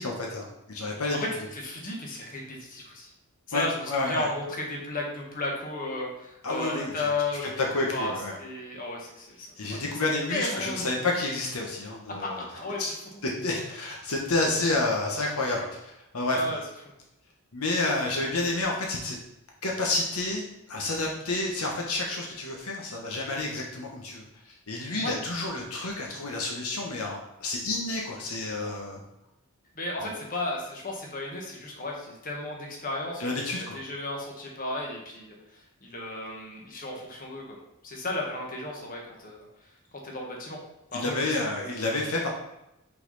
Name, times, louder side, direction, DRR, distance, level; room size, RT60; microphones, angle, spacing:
voice 1, 0.0-1.2 3.5-4.3 6.4-7.1 7.6-8.3 9.6-12.4 12.8-12.9 13.4-15.8 16.1-16.4 17.5-19.2 19.6-20.4 20.7-24.2 24.7-29.0 30.0-30.1 33.2-33.8 40.9-42.3, left 2 dB, 75° left, -1 dB, 1.1 m, -29 dB
voice 2, 1.1-3.1 3.5-8.1 8.4-11.1 12.2-12.8 16.3-16.6 25.0-25.1 29.7-33.5 33.7-35.3 35.8-37.6 37.8-39.4 40.0-40.6 40.9-42.1, left 2 dB, 40° left, -1 dB, 1.3 m, -34 dB
5.7 x 4.1 x 4.0 m, 0.88 s
head